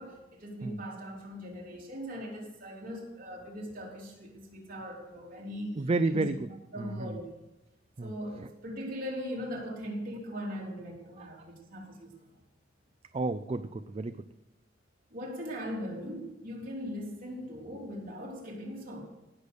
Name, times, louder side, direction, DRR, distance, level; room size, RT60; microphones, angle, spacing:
voice 1, 0.0-6.3 6.7-7.3 8.0-12.1 15.1-19.0, equal, 45° right, -2 dB, 3.6 m, -40 dB
voice 2, 5.8-6.3 6.8-7.2 8.0-8.1 8.4-8.5 11.2-11.3 13.1-14.2, right 3 dB, 30° right, 11 dB, 0.4 m, -31 dB
18.0 x 6.8 x 6.5 m, 1.0 s
head